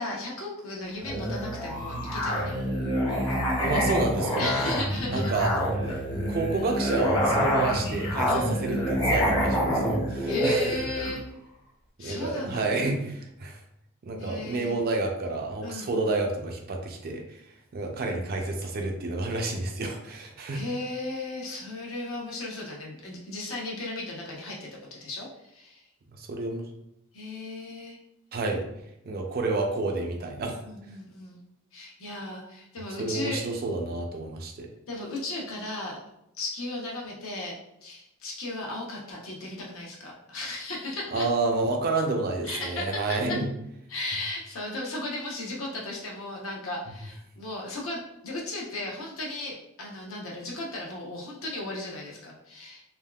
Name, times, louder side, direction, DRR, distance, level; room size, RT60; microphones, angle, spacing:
voice 1, 0.0-2.6 4.4-5.3 8.3-8.7 10.3-11.2 12.0-12.7 14.2-14.8 15.6-16.1 20.5-25.8 27.1-28.0 30.6-31.5 31.7-33.4 34.9-36.0 36.3-37.5 37.8-41.3 42.4-43.4 43.9-52.8, left 2 dB, 60° left, -3 dB, 0.8 m, -35 dB
Musical instrument, 1.0-11.2, equal, 20° left, 0.6 m, -27 dB
voice 2, 3.6-4.8 5.1-6.0 6.3-10.7 12.0-13.6 14.0-17.2 17.7-20.6 26.2-26.6 28.3-28.7 29.1-30.6 33.0-34.7 41.1-43.5, right 3 dB, 45° right, 3 dB, 0.4 m, -29 dB
3.4 x 2.3 x 2.3 m, 0.83 s
head